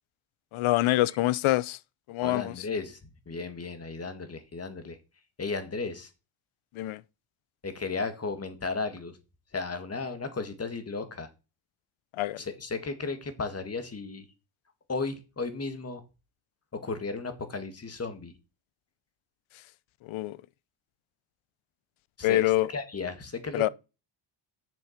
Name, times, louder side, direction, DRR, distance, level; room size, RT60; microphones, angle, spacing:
voice 1, 0.5-1.8 2.1-2.6 6.7-7.0 12.1-12.4 19.5-19.6 20.0-20.4 22.2-22.7 23.5-23.7, left 16 dB, 75° left, 0.7 m, -26 dB
voice 2, 2.2-5.0 5.4-6.1 7.6-9.2 9.5-11.3 12.4-14.3 14.9-16.0 16.7-18.3 22.2-23.6, left 4 dB, 30° left, 1.8 m, -34 dB
7.2 x 6.7 x 5.8 m
cardioid pair, 95°, 49 cm